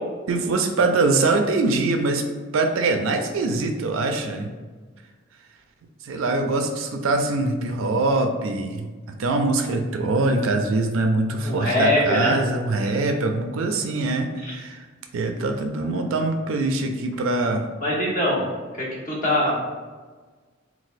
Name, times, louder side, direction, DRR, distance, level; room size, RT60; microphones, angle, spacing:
voice 1, 0.3-2.3 2.5-4.5 6.0-14.9 15.1-17.6, right 3 dB, 70° right, 5 dB, 0.4 m, -23 dB
voice 2, 11.4-12.3 14.4-14.5 15.9-16.0 17.8-18.4 18.8-19.5, left 1 dB, 40° left, -5 dB, 1.0 m, -22 dB
4.0 x 2.3 x 2.5 m, 1.4 s
head